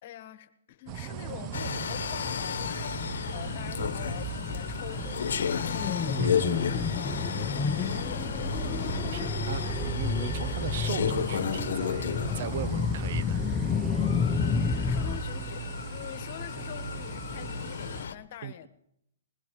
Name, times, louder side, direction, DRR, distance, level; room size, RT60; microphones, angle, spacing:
voice 1, 0.0-3.0 3.3-8.6 14.9-18.7, left 12 dB, 50° left, 13 dB, 1.3 m, -45 dB
sound 1, 0.9-18.1, right 8 dB, 30° right, 0.6 m, -39 dB
sound 2, 1.5-18.1, left 7 dB, 80° left, 1.1 m, -33 dB
sound 3, 2.1-15.2, left 6 dB, 15° left, 0.7 m, -32 dB
voice 2, 9.0-12.1 12.3-13.4 18.4-18.7, right 8 dB, 60° right, 15 dB, 0.9 m, -37 dB
21.0 x 20.5 x 3.1 m, 0.76 s
hypercardioid pair, 150°, 0 cm